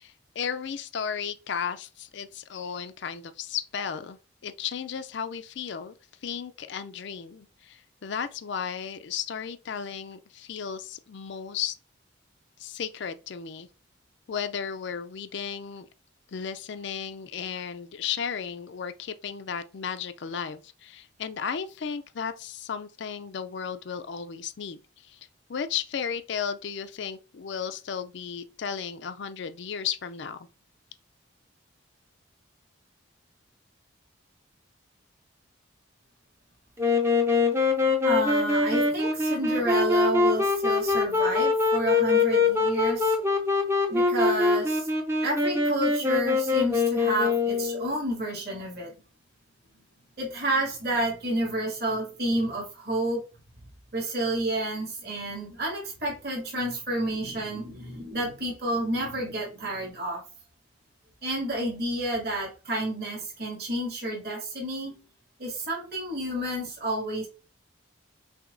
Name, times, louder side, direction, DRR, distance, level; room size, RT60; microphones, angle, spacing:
voice 1, 0.0-5.9 6.2-11.8 12.6-13.7 14.3-15.9 16.3-25.2 25.5-30.4, left 7 dB, 55° left, 0.4 m, -34 dB
Wind instrument woodwind instrument, 36.8-47.9, left 4 dB, 10° right, 0.5 m, -24 dB
voice 2, 38.0-43.2 43.9-44.9 45.2-48.9 50.2-53.2 53.9-60.2 61.2-65.0 65.4-67.3, right 1 dB, 50° right, 2.1 m, -30 dB
6.0 x 2.7 x 2.6 m
head